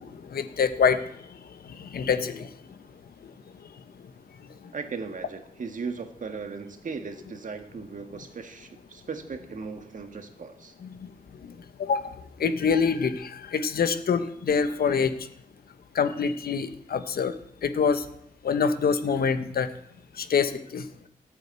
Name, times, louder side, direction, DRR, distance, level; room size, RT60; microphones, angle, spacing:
voice 1, 0.0-2.5 3.2-3.3 3.6-3.7 10.8-11.1 11.4-15.3 15.9-17.3 17.6-18.1 18.4-19.7 20.1-20.9, left 6 dB, 85° left, 10 dB, 1.2 m, -26 dB
voice 2, 4.7-10.7, right 5 dB, 60° right, 7 dB, 1.7 m, -37 dB
14.5 x 8.9 x 8.4 m, 0.72 s
wide cardioid pair, 140°, 15 cm